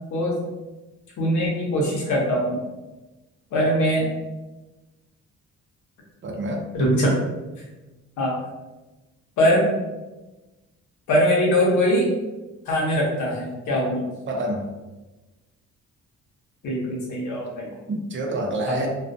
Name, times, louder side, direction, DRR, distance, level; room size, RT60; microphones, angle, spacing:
voice 1, 1.2-2.6 3.5-4.1 6.7-7.1 8.2-8.3 9.4-9.6 11.1-12.1 12.7-14.0 16.6-17.7 18.7-18.9, equal, 75° left, -3 dB, 1.0 m, -22 dB
voice 2, 6.2-6.7 14.3-14.7 17.9-18.9, right 1 dB, 40° right, 1 dB, 0.6 m, -27 dB
2.4 x 2.3 x 2.5 m, 1.1 s
cardioid pair, 90°, 30 cm